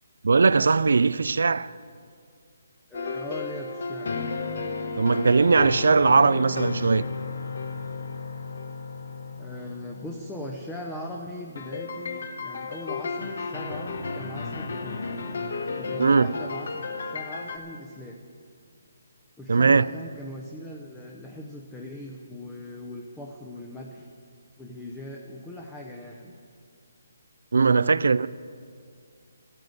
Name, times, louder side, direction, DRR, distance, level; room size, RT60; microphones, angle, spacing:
voice 1, 0.2-1.7 5.0-7.0 16.0-16.3 19.5-19.8 27.5-28.3, right 4 dB, 75° right, 0.3 m, -19 dB
sound 1, 2.9-10.7 11.5-17.6, left 4 dB, 65° left, 1.1 m, -33 dB
voice 2, 2.9-4.1 9.4-15.0 15.7-18.2 19.4-24.1 24.6-26.3 27.5-28.3, left 1 dB, 5° left, 0.7 m, -40 dB
13.0 x 9.1 x 8.0 m
hypercardioid pair, 165°, 0 cm